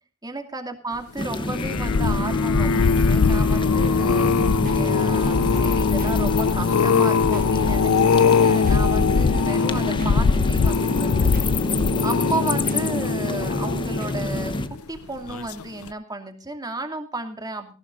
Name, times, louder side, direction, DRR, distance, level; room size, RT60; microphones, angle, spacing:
voice 1, 0.2-4.3 4.7-11.3 12.0-14.6 14.9-17.7, right 2 dB, 20° right, 6 dB, 2.6 m, -33 dB
sound 1, 1.2-14.7, left 2 dB, 20° left, 1.0 m, -28 dB
sound 2, 1.4-14.8 15.3-15.6 15.9-16.0, left 5 dB, 85° left, 0.6 m, -21 dB
sound 3, 4.0-14.9, right 2 dB, 45° right, 1.2 m, -43 dB
18.0 x 18.0 x 2.6 m, 0.36 s
head